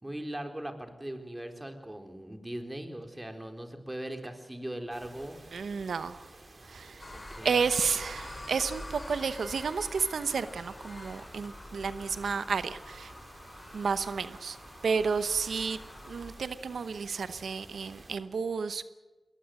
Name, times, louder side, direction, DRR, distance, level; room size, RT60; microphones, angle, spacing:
voice 1, 0.0-5.4 7.1-7.5, right 1 dB, 20° right, 5 dB, 4.0 m, -39 dB
sound 1, 4.9-18.2, right 2 dB, 55° right, 3.8 m, -53 dB
voice 2, 5.5-6.3 6.6-7.1 7.4-13.1 13.7-14.6 14.8-18.8, right 5 dB, 90° right, 13 dB, 0.9 m, -31 dB
sound 2, 7.0-16.4, left 1 dB, 40° left, 6.0 m, -46 dB
21.5 x 19.5 x 7.8 m, 1.2 s
cardioid pair, 40°, 0 cm